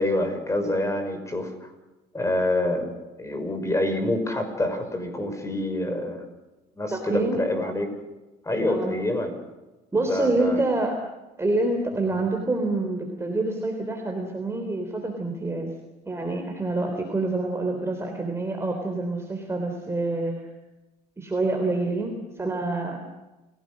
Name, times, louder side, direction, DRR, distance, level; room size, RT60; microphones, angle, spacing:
voice 1, 0.0-1.7 2.1-6.2 6.8-7.9 8.4-9.4 9.9-10.6 12.2-12.3, left 1 dB, 15° left, 7 dB, 5.8 m, -27 dB
voice 2, 6.9-7.4 8.7-8.9 9.9-11.0 11.4-15.7 16.0-20.3 21.2-23.0, right 2 dB, 15° right, 3 dB, 3.7 m, -27 dB
29.0 x 17.5 x 6.4 m, 1.1 s
cardioid pair, 110°, 17 cm